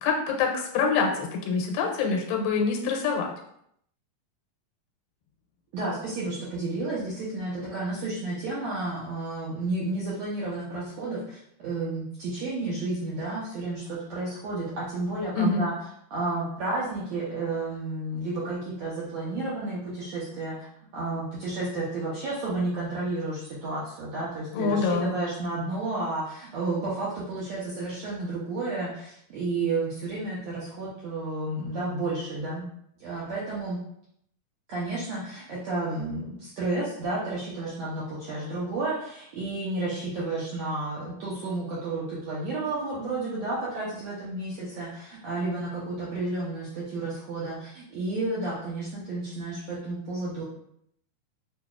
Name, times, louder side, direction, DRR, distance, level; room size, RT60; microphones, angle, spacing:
voice 1, 0.0-3.3 15.4-15.7 24.5-25.1, left 4 dB, 85° left, 1 dB, 2.2 m, -25 dB
voice 2, 5.7-15.7 16.1-20.7 20.9-32.6 33.0-33.8 34.7-50.4, right 2 dB, 80° right, -7 dB, 1.5 m, -31 dB
5.9 x 2.3 x 2.3 m, 0.72 s
omnidirectional pair, 3.9 m